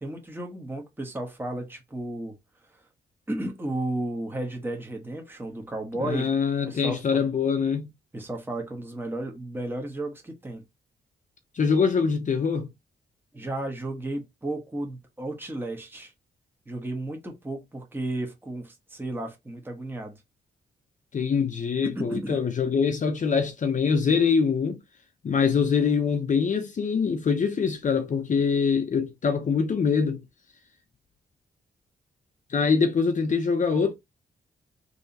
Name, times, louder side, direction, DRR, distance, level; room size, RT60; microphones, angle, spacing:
voice 1, 0.0-2.3 3.3-6.3 6.7-7.0 8.1-10.6 13.3-16.1 16.7-20.2 21.8-22.4, right 1 dB, 10° right, 1.2 m, -33 dB
voice 2, 6.0-7.9 11.5-12.7 21.1-24.8 25.2-30.2 32.5-33.9, left 5 dB, 45° left, 0.7 m, -24 dB
3.3 x 2.8 x 4.1 m
cardioid pair, 85°, 18 cm